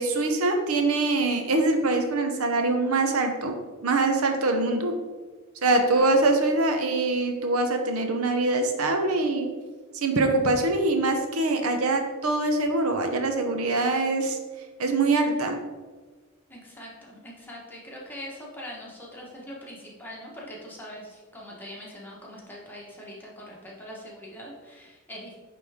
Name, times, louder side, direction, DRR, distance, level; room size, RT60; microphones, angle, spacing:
voice 1, 0.0-3.5 3.8-4.9 5.6-9.5 9.9-14.4 14.8-15.6, right 2 dB, 80° right, 5 dB, 0.8 m, -24 dB
voice 2, 5.8-6.2 16.5-25.3, equal, 10° left, -4 dB, 1.3 m, -42 dB
9.1 x 3.4 x 3.5 m, 1.3 s
head